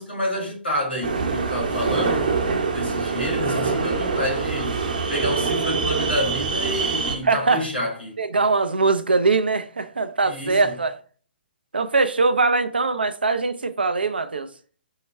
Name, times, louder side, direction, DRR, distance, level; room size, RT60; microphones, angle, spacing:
voice 1, 0.0-2.3 2.7-4.8 5.1-8.2 10.2-10.7, equal, 85° left, 2.1 m, -28 dB
sound 1, 1.0-7.2, right 4 dB, 55° right, 0.9 m, -24 dB
voice 2, 7.2-7.7 8.2-11.0 11.7-14.5, right 3 dB, 75° right, 0.5 m, -21 dB
4.6 x 2.2 x 4.3 m
figure-of-eight pair, 125°, 5 cm